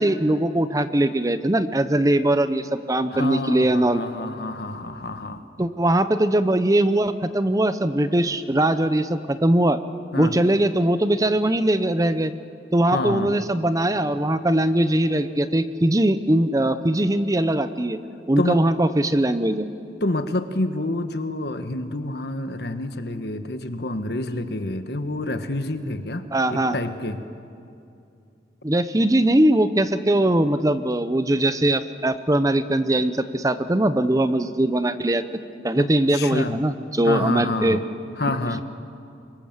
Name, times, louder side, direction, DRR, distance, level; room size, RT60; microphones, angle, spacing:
voice 1, 0.0-4.0 5.6-9.8 10.2-12.3 12.7-18.0 18.3-19.7 26.3-26.8 28.6-35.2 35.6-37.8, right 1 dB, 20° right, 12 dB, 0.7 m, -21 dB
voice 2, 3.1-5.4 10.1-10.4 12.9-13.3 18.4-18.6 20.0-26.2 26.5-27.2 35.8-36.6 37.0-37.8 38.2-38.6, left 2 dB, 65° left, 9 dB, 1.4 m, -28 dB
24.5 x 22.0 x 7.4 m, 2.5 s
head